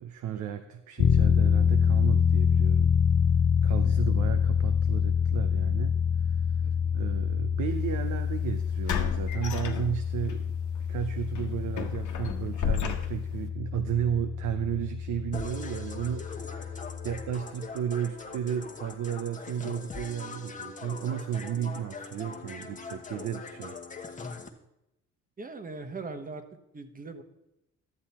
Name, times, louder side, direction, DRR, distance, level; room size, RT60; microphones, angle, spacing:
voice 1, 0.0-3.0 3.6-6.0 6.2-6.4 6.9-10.5 10.8-23.8, right 9 dB, 75° right, 8 dB, 0.7 m, -33 dB
sound 1, 1.0-17.3, left 7 dB, 40° left, 0.7 m, -26 dB
voice 2, 6.6-7.0 25.4-26.4 26.7-27.2, right 3 dB, 30° right, 8 dB, 1.2 m, -40 dB
sound 2, 7.8-7.9 8.9-10.3 10.7-10.9 11.4-13.5, left 8 dB, 75° left, 1.1 m, -33 dB
sound 3, 15.3-24.5, left 4 dB, 25° left, 1.1 m, -41 dB
12.0 x 7.6 x 4.3 m, 0.87 s
cardioid pair, 90°, 30 cm